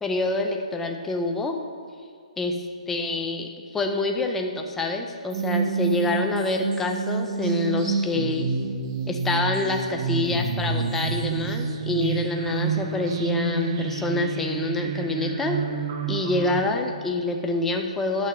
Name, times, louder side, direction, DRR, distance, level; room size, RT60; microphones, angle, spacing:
voice 1, 0.0-1.6 2.4-8.5 9.1-15.6 16.1-18.3, left 2 dB, 5° left, 3 dB, 0.5 m, -27 dB
sound 1, 5.3-16.6, right 5 dB, 35° right, 0.7 m, -28 dB
9.1 x 6.2 x 5.4 m, 2.1 s
hypercardioid pair, 160°, 4 cm